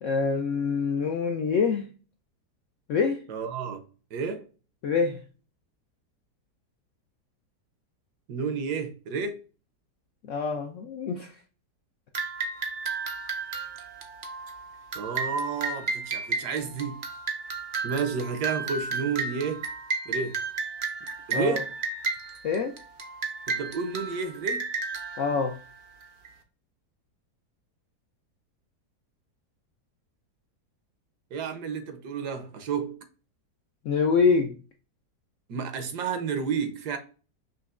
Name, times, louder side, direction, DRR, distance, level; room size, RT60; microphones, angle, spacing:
voice 1, 0.0-1.9 2.9-3.2 4.8-5.2 10.3-11.3 21.3-21.6 22.4-22.8 25.2-25.5 33.8-34.6, left 5 dB, 75° left, 0.7 m, -25 dB
voice 2, 3.3-3.8 4.1-4.4 8.3-9.4 14.9-17.0 17.8-19.6 20.1-20.4 21.3-21.7 23.5-24.6 31.3-33.0 35.5-37.0, right 5 dB, 75° right, 1.3 m, -31 dB
sound 1, 12.1-26.3, right 4 dB, 60° right, 0.5 m, -33 dB
5.5 x 3.0 x 2.4 m
omnidirectional pair, 1.8 m